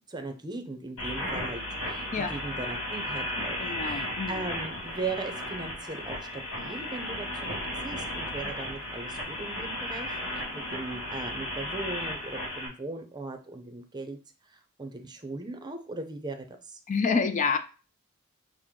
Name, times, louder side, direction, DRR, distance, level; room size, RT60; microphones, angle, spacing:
voice 1, 0.1-7.6 7.8-16.8, right 3 dB, 20° right, 0.6 m, -39 dB
sound 1, 1.0-12.7, left 1 dB, 75° left, 1.8 m, -35 dB
voice 2, 3.6-4.4 16.9-17.6, left 5 dB, 35° left, 0.4 m, -27 dB
6.2 x 2.1 x 3.7 m
head